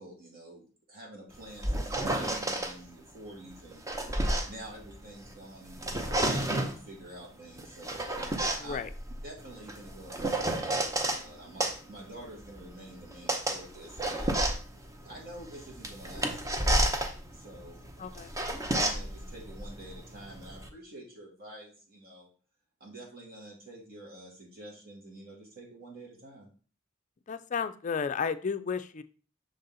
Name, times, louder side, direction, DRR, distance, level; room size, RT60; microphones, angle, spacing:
voice 1, 0.0-3.8 4.5-8.0 8.6-8.8 9.2-14.4 15.0-17.0 17.3-17.8 18.8-22.3 22.8-26.5, right 1 dB, 50° right, -2 dB, 2.3 m, -48 dB
sound 1, 1.3-2.7 3.5-5.3 5.7-6.8 7.6-11.2 11.6-20.7, right 1 dB, 15° right, 0.6 m, -31 dB
voice 2, 8.6-8.9 18.0-18.3 27.3-29.0, left 6 dB, 40° left, 11 dB, 0.4 m, -33 dB
6.2 x 4.0 x 3.9 m, 0.38 s
head